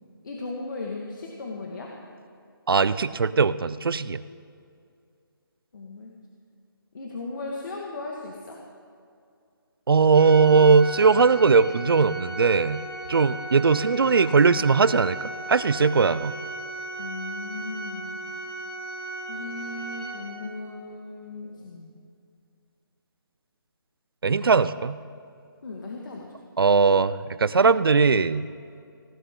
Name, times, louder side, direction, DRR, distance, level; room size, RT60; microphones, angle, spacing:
voice 1, 0.2-1.9 5.7-6.1 6.9-8.6 17.0-18.2 19.3-21.9 25.6-26.3, left 3 dB, 55° left, -1 dB, 2.1 m, -36 dB
voice 2, 2.7-4.2 9.9-12.8 13.1-16.4 24.2-25.0 26.6-28.5, right 5 dB, 75° right, 16 dB, 0.7 m, -20 dB
Organ, 10.1-20.7, right 2 dB, 20° right, 4.2 m, -36 dB
19.5 x 17.0 x 4.0 m, 2.4 s
figure-of-eight pair, 160°, 12 cm